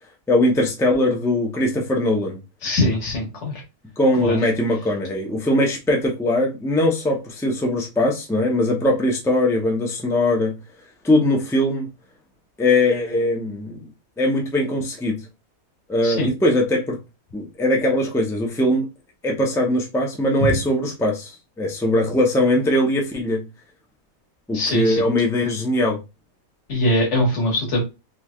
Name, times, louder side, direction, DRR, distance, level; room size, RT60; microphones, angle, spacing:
voice 1, 0.3-2.4 4.0-10.5 11.0-11.9 12.6-13.9 14.2-15.2 15.9-17.0 17.3-18.8 19.2-23.4 24.5-26.0, left 1 dB, 5° left, 0.5 m, -21 dB
voice 2, 2.6-3.5 4.2-4.4 16.0-16.3 20.4-20.5 24.5-25.0 26.7-27.8, left 1 dB, 55° left, 1.6 m, -22 dB
3.9 x 3.1 x 2.4 m
omnidirectional pair, 1.5 m